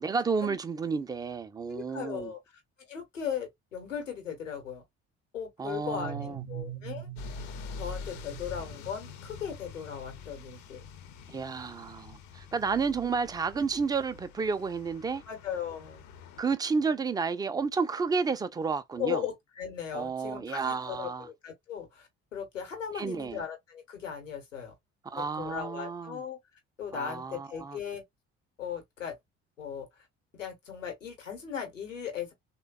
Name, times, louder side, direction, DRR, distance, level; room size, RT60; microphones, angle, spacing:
voice 1, 0.0-2.3 5.6-6.4 11.3-15.2 16.4-19.2 19.9-21.3 23.0-23.4 25.0-26.2 26.9-27.8, right 5 dB, 10° right, 0.3 m, -31 dB
voice 2, 1.7-2.6 2.9-4.8 5.3-7.1 7.8-10.9 12.7-12.9 15.3-16.1 19.0-24.7 25.2-26.4 26.8-28.0 28.6-29.2 29.6-29.9 30.3-32.3, left 8 dB, 85° left, 1.0 m, -37 dB
sound 1, 5.8-9.5, right 11 dB, 50° right, 0.7 m, -43 dB
sound 2, 7.2-16.4, left 5 dB, 55° left, 0.6 m, -45 dB
3.3 x 2.2 x 2.2 m
figure-of-eight pair, 50°, 37 cm